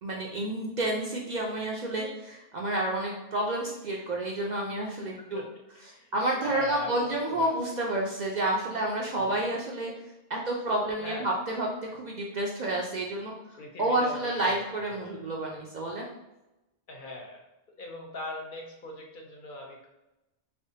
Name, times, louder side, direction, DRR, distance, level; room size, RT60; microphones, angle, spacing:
voice 1, 0.0-5.4 6.1-9.9 10.3-13.3 13.8-16.1, right 1 dB, 55° right, -1 dB, 0.5 m, -30 dB
voice 2, 5.7-6.1 6.4-7.5 9.1-9.4 11.0-11.4 13.6-14.6 14.9-15.2 16.9-17.5 17.8-19.9, left 1 dB, 60° left, 1 dB, 0.7 m, -41 dB
3.4 x 3.2 x 2.7 m, 0.97 s
omnidirectional pair, 1.1 m